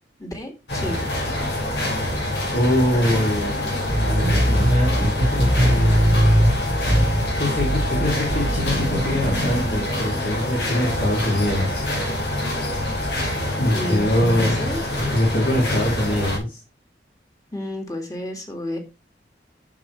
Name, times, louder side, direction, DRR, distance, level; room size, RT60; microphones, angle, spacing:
voice 1, 0.2-1.1 13.7-14.8 17.5-18.8, left 1 dB, 20° left, 3 dB, 1.9 m, -31 dB
sound 1, 0.7-16.4, left 1 dB, 80° left, 5.6 m, -26 dB
voice 2, 2.5-3.7 4.0-6.2 7.4-11.8 13.6-14.5 15.0-16.6, left 1 dB, 55° left, -2 dB, 2.9 m, -23 dB
sound 2, 3.9-9.9, right 1 dB, 40° right, 1.1 m, -21 dB
9.4 x 6.9 x 3.3 m, 0.28 s
head